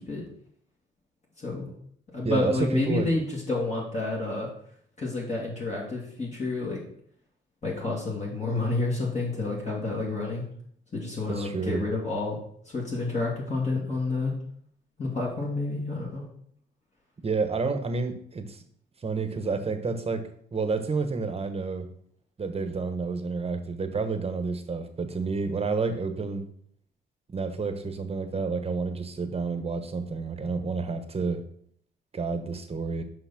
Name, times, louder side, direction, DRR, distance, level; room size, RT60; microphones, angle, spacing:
voice 1, 1.4-1.7 2.1-4.5 5.0-6.8 7.6-10.5 10.9-12.4 12.7-14.3 15.0-16.3, left 3 dB, 35° left, -4 dB, 2.3 m, -29 dB
voice 2, 2.2-3.1 11.3-11.8 17.2-18.6 19.0-21.9 22.4-26.4 27.3-31.4 32.1-33.0, right 4 dB, 30° right, 8 dB, 1.2 m, -30 dB
6.0 x 5.5 x 5.9 m, 0.64 s
cardioid pair, 90°, 20 cm